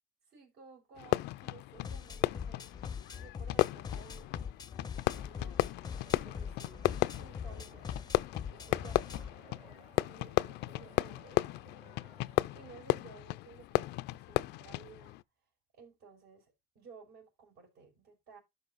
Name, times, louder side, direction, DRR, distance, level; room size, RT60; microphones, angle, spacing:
voice 1, 0.3-2.6 3.1-4.5 5.2-5.7 6.2-8.0 8.4-12.2 12.5-15.2 15.7-18.4, right 5 dB, 75° right, 5.2 m, -56 dB
Fireworks, 1.0-15.2, left 18 dB, 85° left, 0.4 m, -35 dB
sound 1, 1.7-9.3, left 7 dB, 25° left, 0.5 m, -42 dB
sound 2, 4.9-12.7, right 5 dB, 35° right, 1.5 m, -62 dB
12.0 x 5.0 x 4.0 m
cardioid pair, 110°, 17 cm